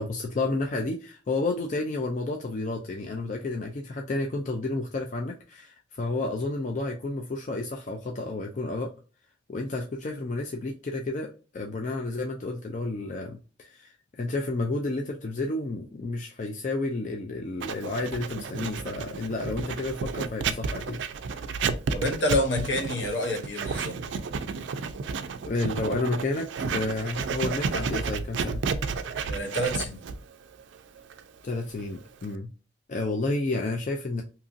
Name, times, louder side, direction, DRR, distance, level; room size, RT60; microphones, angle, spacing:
voice 1, 0.0-8.9 9.5-21.0 21.3-21.4 25.4-28.6 31.4-32.5 32.9-34.2, left 2 dB, 40° left, 0.4 m, -31 dB
Writing, 17.6-32.3, right 5 dB, 70° right, 0.3 m, -32 dB
voice 2, 21.9-24.0 29.3-30.0, left 1 dB, 70° left, 0.8 m, -28 dB
2.9 x 2.6 x 2.4 m
head